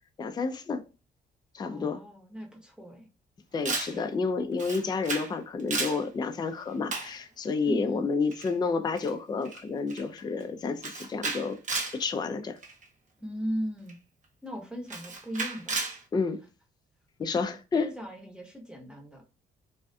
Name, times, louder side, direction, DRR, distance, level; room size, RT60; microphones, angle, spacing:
voice 1, 0.2-0.8 1.5-2.0 3.5-11.6 11.9-12.6 16.1-16.4 17.2-17.9, left 4 dB, 20° left, 0.3 m, -30 dB
voice 2, 1.6-3.1 3.9-4.1 7.6-8.1 13.2-14.0 14.4-15.8 17.8-19.2, equal, 5° right, 0.9 m, -37 dB
Camera, 3.7-4.0 4.6-5.3 5.6-6.0 6.9-7.2 8.3-8.5 9.0-9.1 9.5-9.6 9.9-10.2 10.8-12.0 12.6-12.8 13.9-14.0 14.9-16.0, right 3 dB, 40° right, 0.7 m, -33 dB
2.5 x 2.3 x 2.2 m
supercardioid pair, 70°, 19 cm